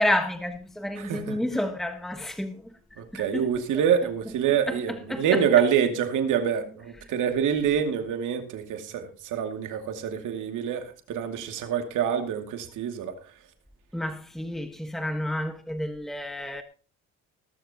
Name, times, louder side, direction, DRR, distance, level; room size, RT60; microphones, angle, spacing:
voice 1, 0.0-2.6 3.1-3.5 4.7-5.4 13.9-16.6, left 1 dB, ahead, 1.4 m, -30 dB
voice 2, 1.0-1.4 3.0-13.1, right 8 dB, 85° right, 2.6 m, -26 dB
18.5 x 13.0 x 2.9 m
cardioid pair, 90°, 30 cm